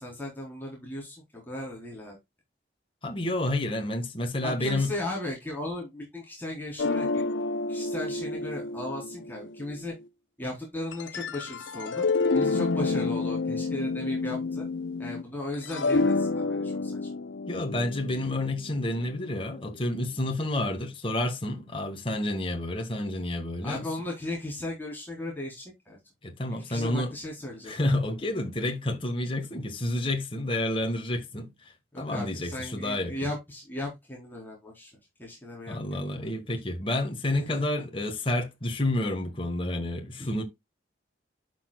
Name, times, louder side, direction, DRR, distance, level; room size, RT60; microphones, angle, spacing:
voice 1, 0.0-2.2 4.4-7.3 7.7-9.9 10.4-12.1 12.3-14.7 15.0-17.1 23.6-26.0 26.5-27.9 31.9-34.9 35.2-36.3 37.3-37.6 40.2-40.4, left 1 dB, 10° left, 3.9 m, -36 dB
voice 2, 3.0-4.9 17.5-23.8 26.2-27.1 27.7-33.1 35.7-40.4, left 1 dB, 30° left, 1.6 m, -29 dB
sound 1, 6.8-9.9 10.9-15.2 15.5-19.7, left 3 dB, 90° left, 0.7 m, -29 dB
11.5 x 6.2 x 2.3 m
head